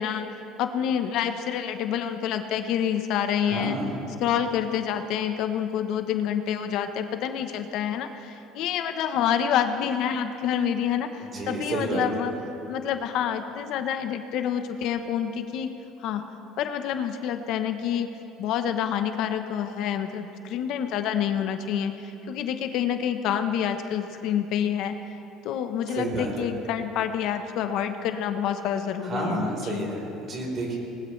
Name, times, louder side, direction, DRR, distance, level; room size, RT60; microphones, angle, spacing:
voice 1, 0.0-3.8 4.2-12.3 12.7-15.7 16.0-16.2 16.6-18.1 18.4-25.0 25.4-29.9, left 9 dB, 65° left, 8 dB, 0.9 m, -27 dB
voice 2, 3.4-4.0 11.2-12.1 25.9-26.5 29.0-30.8, right 2 dB, 35° right, -1 dB, 4.1 m, -30 dB
20.5 x 20.0 x 3.3 m, 2.9 s
cardioid pair, 130°, 0 cm